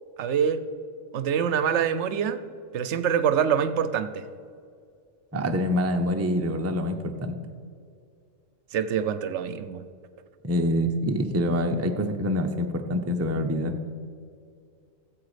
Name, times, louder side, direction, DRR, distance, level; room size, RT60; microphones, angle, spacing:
voice 1, 0.2-0.6 1.1-2.4 2.7-4.3 8.7-9.8, right 8 dB, 65° right, 12 dB, 0.9 m, -25 dB
voice 2, 5.3-7.4 10.4-13.8, equal, 20° right, 5 dB, 0.4 m, -26 dB
15.0 x 7.5 x 5.0 m, 2.3 s
omnidirectional pair, 1.4 m